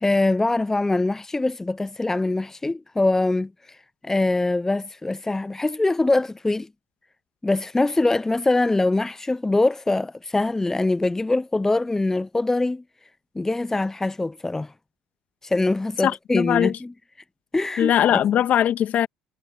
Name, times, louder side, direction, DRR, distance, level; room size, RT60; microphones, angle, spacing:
voice 1, 0.0-3.8 4.0-6.7 7.4-12.8 13.4-14.7 15.4-16.9 17.5-18.2, left 2 dB, 15° left, 0.7 m, -23 dB
voice 2, 16.0-16.8 17.8-19.1, left 10 dB, 55° left, 1.8 m, -20 dB
hypercardioid pair, 65°, 3 cm